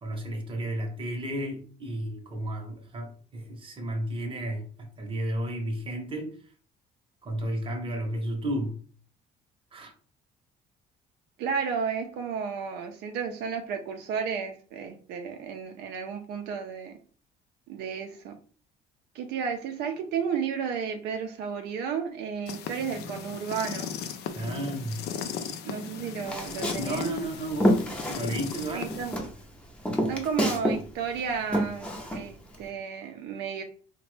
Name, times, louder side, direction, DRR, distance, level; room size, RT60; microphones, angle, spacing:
voice 1, 0.0-6.3 7.2-8.8 9.7-9.9 24.3-25.5 26.8-28.9, right 1 dB, 30° right, 0.8 m, -33 dB
voice 2, 11.4-16.9 17.7-18.4 19.1-23.9 25.6-27.1 28.7-29.1 30.1-33.6, right 6 dB, 80° right, 0.4 m, -33 dB
sound 1, 22.5-29.2, left 7 dB, 80° left, 0.4 m, -37 dB
Walk footsteps, 26.2-28.7 28.9-30.8 31.1-32.6, equal, 5° left, 0.6 m, -28 dB
2.9 x 2.1 x 3.1 m
cardioid pair, 110°, 17 cm